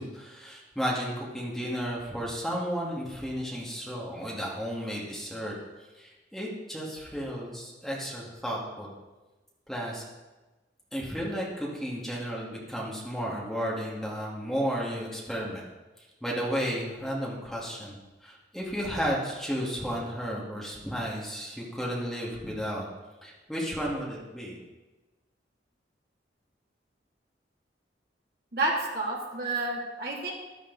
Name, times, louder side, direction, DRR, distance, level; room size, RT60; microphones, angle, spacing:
voice 1, 0.0-5.5 5.9-8.9 9.7-10.0 10.9-15.7 16.0-18.0 18.2-22.9 23.2-24.6, equal, ahead, -5 dB, 2.1 m, -33 dB
voice 2, 28.5-30.3, right 2 dB, 55° right, -3 dB, 2.9 m, -30 dB
13.5 x 12.0 x 4.1 m, 1.2 s
head